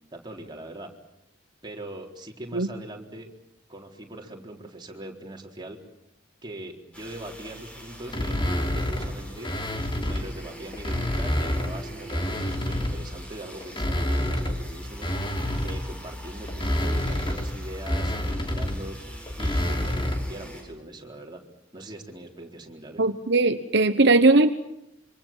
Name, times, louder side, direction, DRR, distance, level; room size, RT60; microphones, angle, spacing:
voice 1, 0.1-0.9 1.6-3.3 3.7-5.8 6.4-9.5 10.0-15.1 15.6-19.0 19.4-21.4 21.7-23.0, right 1 dB, 25° right, 1 dB, 4.0 m, -41 dB
sound 1, 6.9-20.6, equal, 5° left, 7.5 m, -45 dB
sound 2, 8.1-10.3 10.7-13.1 13.6-20.4, left 1 dB, 25° left, 3.2 m, -28 dB
voice 2, 23.0-24.5, right 2 dB, 60° right, 8 dB, 1.1 m, -19 dB
27.0 x 25.5 x 7.5 m, 0.84 s
head